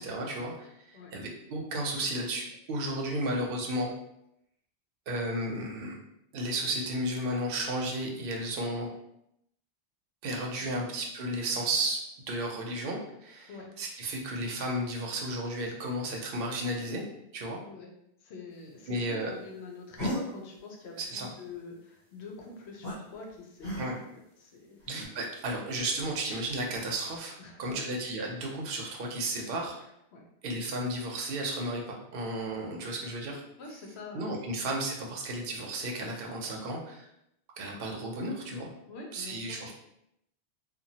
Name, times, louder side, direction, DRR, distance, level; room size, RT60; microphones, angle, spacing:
voice 1, 0.0-3.9 5.1-6.0 6.3-8.9 10.2-12.0 12.3-13.5 13.8-17.0 17.3-17.6 18.9-19.3 20.0-20.1 21.0-21.3 23.8-24.0 24.9-29.9 30.4-33.4 34.1-37.1 37.6-38.7 39.1-39.7, right 1 dB, 65° right, 0 dB, 0.8 m, -33 dB
voice 2, 18.2-23.9 24.4-25.0 27.4-28.0 30.1-30.3 32.7-32.9 33.6-34.6 38.9-39.7, left 4 dB, 85° left, 0 dB, 0.9 m, -46 dB
sound 1, 20.0-20.2 22.8-23.0 23.6-24.1 24.8-25.1, equal, 70° left, 1.4 m, -34 dB
2.9 x 2.3 x 2.7 m, 0.79 s
omnidirectional pair, 1.1 m